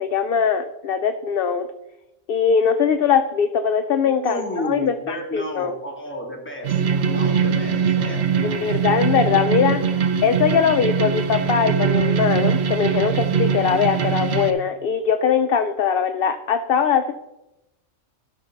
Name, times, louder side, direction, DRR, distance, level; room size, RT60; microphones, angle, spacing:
voice 1, 0.0-1.7 2.3-5.7 8.4-9.9 10.2-17.1, left 7 dB, 60° left, 9 dB, 0.6 m, -21 dB
voice 2, 4.0-6.8 7.1-8.7, equal, 10° left, 0 dB, 1.7 m, -32 dB
sound 1, 6.6-14.5, right 6 dB, 60° right, 0.9 m, -22 dB
12.5 x 4.4 x 5.8 m, 0.93 s
omnidirectional pair, 1.3 m